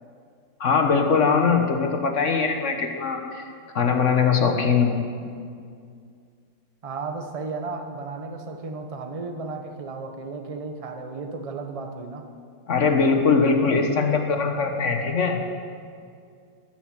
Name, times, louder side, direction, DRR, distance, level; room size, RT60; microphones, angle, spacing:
voice 1, 0.6-3.4 3.7-5.0 12.7-15.4, left 5 dB, 45° left, 4 dB, 1.2 m, -21 dB
voice 2, 6.8-12.3, right 3 dB, 25° right, 5 dB, 0.7 m, -34 dB
13.5 x 8.9 x 7.4 m, 2.2 s
omnidirectional pair, 2.0 m